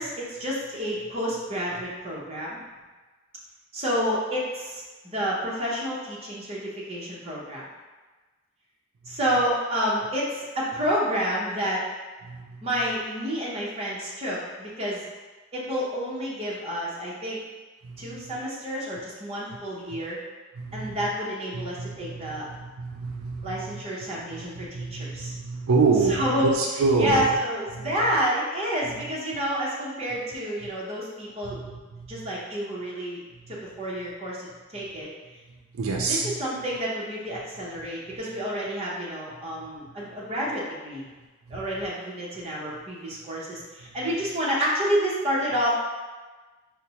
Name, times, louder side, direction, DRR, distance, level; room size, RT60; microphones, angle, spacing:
voice 1, 0.0-2.6 3.7-7.6 9.1-11.8 12.6-15.0 15.5-17.4 18.0-20.2 20.7-22.5 23.4-25.3 26.1-26.5 27.0-31.6 32.1-33.2 33.5-34.5 34.7-35.1 36.1-41.0 41.5-45.8, equal, 30° right, -5 dB, 0.7 m, -29 dB
voice 2, 12.2-12.6 17.8-18.4 19.9-20.0 20.6-21.1 21.5-23.8 24.3-27.3 27.7-27.9 29.0-29.1 30.6-30.7 31.4-32.3 33.5-33.6 35.7-36.4 41.5-41.7, right 4 dB, 75° right, -1 dB, 0.4 m, -28 dB
4.9 x 2.0 x 2.8 m, 1.3 s
head